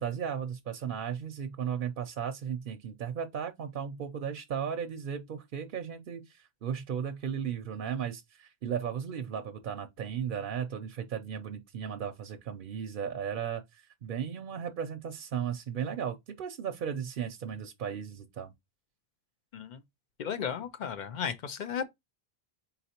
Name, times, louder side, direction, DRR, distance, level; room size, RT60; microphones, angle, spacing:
voice 1, 0.0-18.5, right 8 dB, 65° right, 0.7 m, -35 dB
voice 2, 20.2-21.8, left 7 dB, 55° left, 0.6 m, -34 dB
4.0 x 4.0 x 2.8 m
omnidirectional pair, 1.0 m